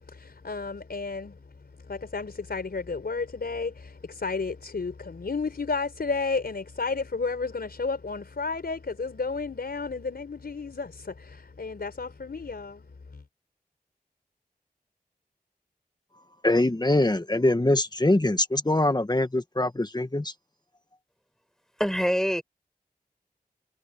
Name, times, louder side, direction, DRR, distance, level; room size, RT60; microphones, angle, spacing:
voice 1, 0.0-13.2, left 4 dB, 80° left, 4.7 m, -32 dB
voice 2, 16.4-20.3, left 1 dB, 25° left, 1.7 m, -23 dB
voice 3, 21.8-22.4, equal, 5° left, 7.3 m, -24 dB
wide cardioid pair, 50°, 16 cm